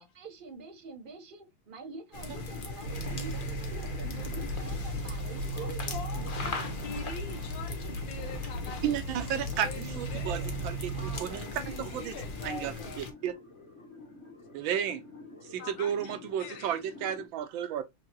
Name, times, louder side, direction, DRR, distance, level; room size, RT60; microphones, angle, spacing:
voice 1, 0.1-6.8 10.9-11.5, right 4 dB, 65° right, 0.5 m, -46 dB
sound 1, 2.1-13.1, left 3 dB, 55° left, 0.6 m, -40 dB
sound 2, 2.8-11.2, right 1 dB, 50° right, 2.6 m, -37 dB
voice 2, 5.5-10.6 11.5-13.0 15.4-16.9, left 5 dB, 75° left, 1.7 m, -44 dB
sound 3, 7.3-17.3, left 3 dB, 15° left, 1.5 m, -53 dB
voice 3, 8.8-12.1 12.4-13.3 14.5-15.0 15.5-17.8, right 9 dB, 90° right, 1.5 m, -33 dB
5.0 x 2.8 x 2.8 m
omnidirectional pair, 2.1 m